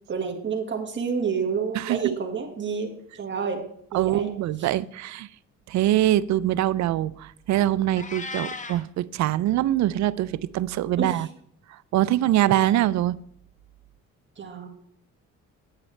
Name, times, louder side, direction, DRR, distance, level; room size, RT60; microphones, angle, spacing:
voice 1, 0.1-3.7 3.9-4.3 4.6-4.7 11.0-11.3 14.4-14.7, right 6 dB, 40° right, 1.7 m, -29 dB
voice 2, 1.8-2.2 3.9-5.3 5.7-11.3 11.9-13.2, right 13 dB, 65° right, 0.4 m, -23 dB
Meow, 8.0-8.8, left 3 dB, 25° left, 0.9 m, -35 dB
9.7 x 8.3 x 3.3 m
cardioid pair, 90°, 30 cm